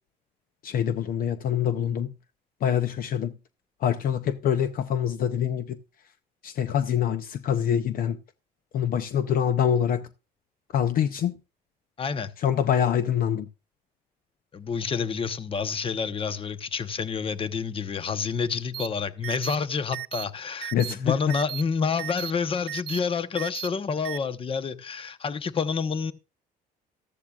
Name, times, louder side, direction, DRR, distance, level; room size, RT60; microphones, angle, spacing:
voice 1, 0.6-2.1 2.6-3.4 3.8-5.8 6.4-8.2 8.7-10.1 10.7-11.4 12.4-13.5 20.7-21.2, left 9 dB, 55° left, 0.6 m, -25 dB
voice 2, 12.0-12.3 14.5-26.1, left 5 dB, 30° left, 0.9 m, -28 dB
sound 1, 18.7-18.9 19.2-19.6 19.9-20.2 20.6-20.9 21.3-21.6 22.0-22.3 22.7-23.0 23.4-23.7 24.0-24.2, right 16 dB, 75° right, 0.4 m, -35 dB
13.5 x 13.5 x 2.4 m
cardioid pair, 110°, 17 cm